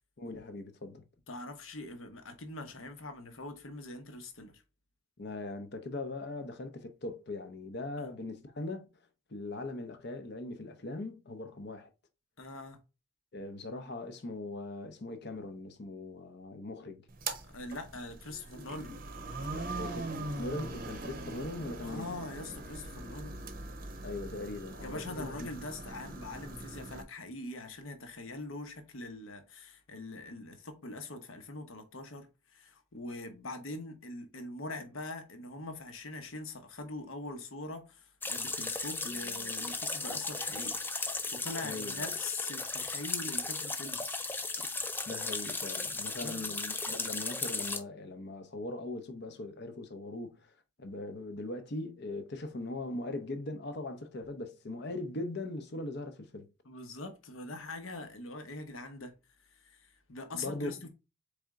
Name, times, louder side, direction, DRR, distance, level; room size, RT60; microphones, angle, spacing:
voice 1, 0.2-1.0 5.2-8.9 9.3-11.9 13.3-17.1 19.5-22.1 24.0-25.5 41.6-42.1 45.1-56.5 60.3-60.8, left 2 dB, 50° left, 0.7 m, -40 dB
voice 2, 1.3-4.6 8.0-8.1 12.4-12.8 17.4-19.0 21.8-23.4 24.8-40.8 41.1-44.0 46.2-46.5 56.6-59.1 59.5-60.9, left 2 dB, 75° left, 1.0 m, -43 dB
sound 1, 17.1-27.0, right 2 dB, 40° right, 0.7 m, -41 dB
sound 2, 38.2-47.8, left 3 dB, 10° left, 0.3 m, -36 dB
4.2 x 3.5 x 3.6 m
head